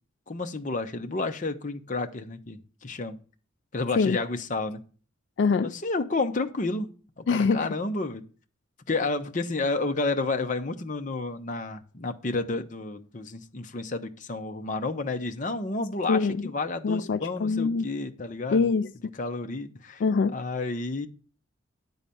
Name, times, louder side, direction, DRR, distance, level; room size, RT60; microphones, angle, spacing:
voice 1, 0.3-3.2 3.7-4.8 5.7-8.2 8.9-18.7 19.2-20.0 20.3-21.1, left 3 dB, 40° left, 0.7 m, -31 dB
voice 2, 5.4-5.7 7.3-7.7 16.1-16.4 16.8-17.9 18.5-18.9 20.0-20.3, left 4 dB, 60° left, 0.3 m, -24 dB
10.0 x 4.0 x 6.9 m
head